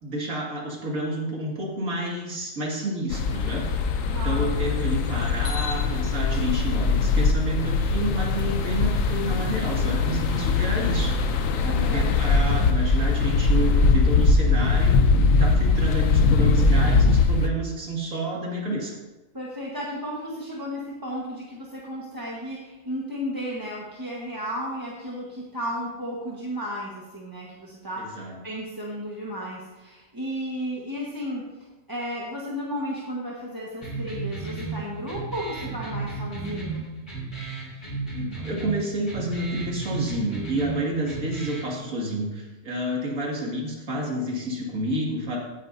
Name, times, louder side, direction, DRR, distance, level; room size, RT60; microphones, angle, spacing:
voice 1, 0.0-11.3 11.5-19.0 28.0-28.4 38.1-45.4, right 1 dB, 85° right, -2 dB, 2.7 m, -30 dB
sound 1, 3.1-17.5, left 4 dB, 80° left, 1.2 m, -21 dB
voice 2, 4.1-4.5 11.6-12.1 19.3-31.4 31.9-36.9, equal, 15° right, -4 dB, 1.4 m, -33 dB
sound 2, 33.8-41.8, right 3 dB, 25° left, 4.3 m, -34 dB
16.5 x 9.1 x 2.7 m, 1.1 s
omnidirectional pair, 1.4 m